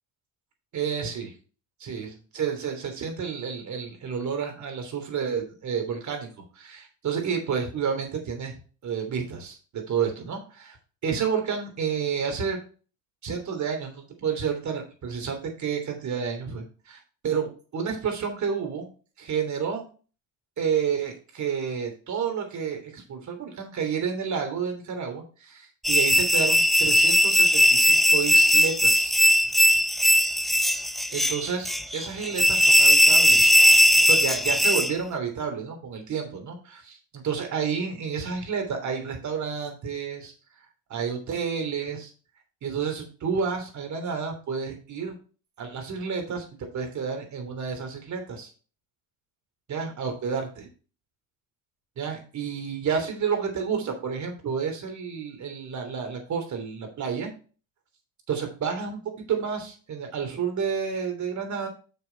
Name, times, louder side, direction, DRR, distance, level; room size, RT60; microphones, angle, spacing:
voice 1, 0.7-1.3 1.8-6.3 6.6-8.5 8.8-10.7 11.0-12.6 13.2-18.9 19.2-19.8 20.6-29.2 31.1-33.5 34.1-40.3 40.9-42.1 42.6-45.2 45.6-46.5 46.7-48.5 49.7-50.5 52.0-57.3 58.3-61.7, right 6 dB, 45° right, 4 dB, 3.2 m, -30 dB
sound 1, 25.8-35.0, left 1 dB, ahead, 0.6 m, -19 dB
6.7 x 6.4 x 4.5 m, 0.37 s
supercardioid pair, 90°, 39 cm